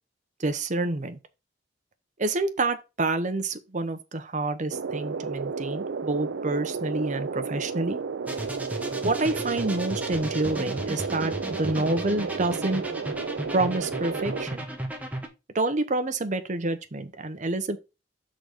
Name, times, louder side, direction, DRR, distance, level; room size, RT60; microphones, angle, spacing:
voice 1, 0.4-1.2 2.2-8.0 9.0-12.8 13.5-14.6 15.5-17.8, right 2 dB, 40° right, 0.8 m, -28 dB
sound 1, 4.7-14.5, right 5 dB, 75° right, 0.5 m, -32 dB
sound 2, 8.3-15.3, right 1 dB, 10° right, 1.1 m, -35 dB
6.3 x 3.9 x 5.1 m
head